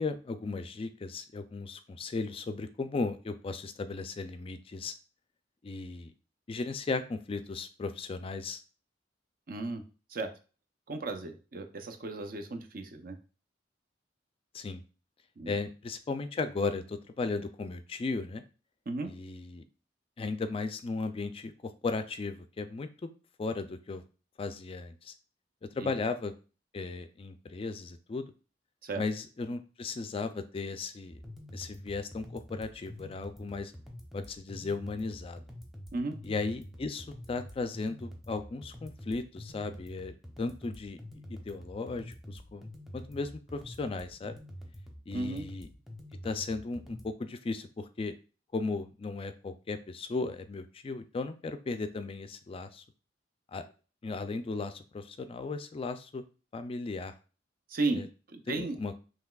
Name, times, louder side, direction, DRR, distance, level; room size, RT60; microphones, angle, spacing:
voice 1, 0.0-4.9 5.6-6.1 6.5-8.6 14.5-14.8 15.5-18.4 19.1-19.6 20.2-23.1 23.4-24.0 24.4-25.1 25.7-26.3 26.7-28.3 29.0-31.2 31.5-33.7 34.1-35.4 36.2-41.0 41.3-42.7 42.9-44.4 45.1-45.7 46.2-48.1 48.5-52.8 53.5-53.6 54.0-56.2 56.5-57.1 58.0-58.1 58.5-58.9, left 3 dB, 30° left, 10 dB, 0.3 m, -36 dB
voice 2, 9.5-9.8 10.1-10.3 10.9-13.2 15.4-15.6 18.9-19.1 25.8-25.9 28.8-29.0 35.9-36.1 45.1-45.4 57.7-58.8, right 3 dB, 50° right, 6 dB, 0.6 m, -34 dB
sound 1, 31.1-47.1, equal, ahead, 0.8 m, -47 dB
5.7 x 3.2 x 2.3 m, 0.36 s
head